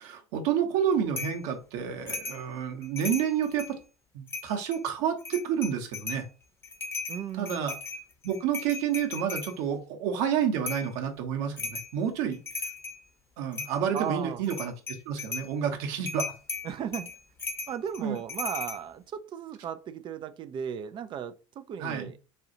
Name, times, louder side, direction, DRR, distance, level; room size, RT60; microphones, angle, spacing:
voice 1, 0.0-3.8 4.1-6.2 7.4-7.7 8.2-12.4 13.4-16.3 18.0-18.2 21.8-22.1, right 8 dB, 55° right, 0.9 m, -29 dB
sound 1, 1.2-1.4 2.1-2.4 2.8-3.8 4.3-4.8 5.2-6.3 6.6-9.5 10.7-10.9 11.6-11.9 12.3-13.0 13.5-14.1 14.4-15.5 16.1-18.8, left 4 dB, 15° left, 0.8 m, -37 dB
voice 2, 7.1-7.7 13.9-14.4 16.6-17.1 17.7-22.2, right 8 dB, 30° right, 0.4 m, -36 dB
4.2 x 2.3 x 2.7 m
figure-of-eight pair, 70°, 16 cm